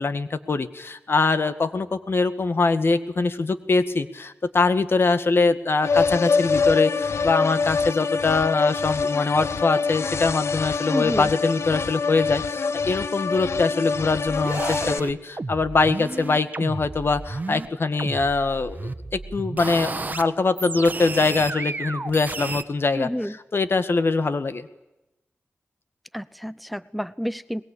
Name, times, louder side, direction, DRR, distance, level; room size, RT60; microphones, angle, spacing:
voice 1, 0.0-23.1 23.5-24.7, left 3 dB, 60° left, 11 dB, 1.9 m, -23 dB
sound 1, 5.8-15.0, left 4 dB, 80° left, 1.0 m, -25 dB
voice 2, 10.9-11.3 23.0-23.3 26.1-27.6, equal, ahead, 17 dB, 0.8 m, -29 dB
sound 2, 14.3-17.7 18.0-20.2 20.6-22.6, right 3 dB, 40° right, 1.8 m, -32 dB
23.0 x 21.5 x 8.7 m, 0.93 s
cardioid pair, 55°, 5 cm